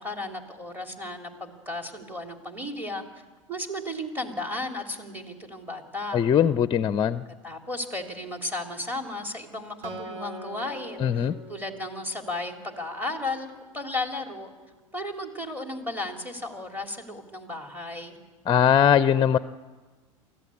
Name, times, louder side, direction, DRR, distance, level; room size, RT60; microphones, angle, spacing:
voice 1, 0.0-3.1 3.5-6.2 7.4-14.5 14.9-18.2, left 2 dB, 10° right, 3 dB, 3.1 m, -34 dB
voice 2, 6.1-7.2 11.0-11.3 18.5-19.4, left 8 dB, 30° left, 14 dB, 0.6 m, -20 dB
Acoustic guitar, 9.8-13.3, right 1 dB, 55° right, 4.1 m, -43 dB
23.5 x 15.5 x 8.5 m, 1.3 s
hypercardioid pair, 90°, 17 cm